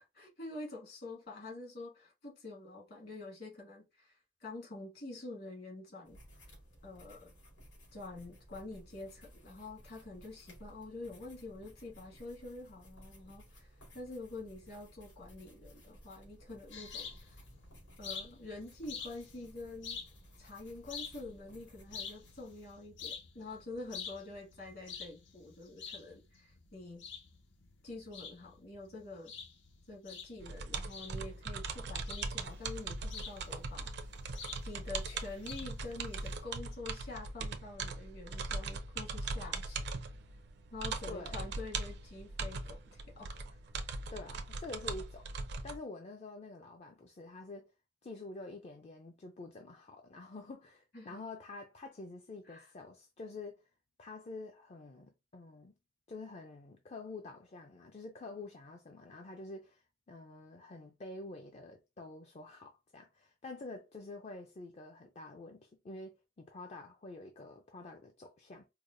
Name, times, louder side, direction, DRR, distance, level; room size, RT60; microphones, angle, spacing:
voice 1, 0.0-6.5 6.8-7.3 7.9-17.3 18.0-20.0 20.4-27.1 27.8-29.3 29.9-33.9 34.7-39.8 40.7-43.5 50.9-51.2 52.5-52.7, left 2 dB, 55° left, 1.8 m, -47 dB
sound 1, 6.1-22.7, equal, 90° left, 2.3 m, -58 dB
sound 2, 16.7-36.4, left 6 dB, 75° left, 0.8 m, -49 dB
sound 3, 30.4-45.8, right 3 dB, 65° right, 0.5 m, -40 dB
voice 2, 41.1-41.4 44.1-45.3 45.6-47.7 48.0-53.6 54.0-55.7 56.1-68.7, left 2 dB, 35° left, 0.4 m, -48 dB
4.8 x 2.1 x 2.5 m
head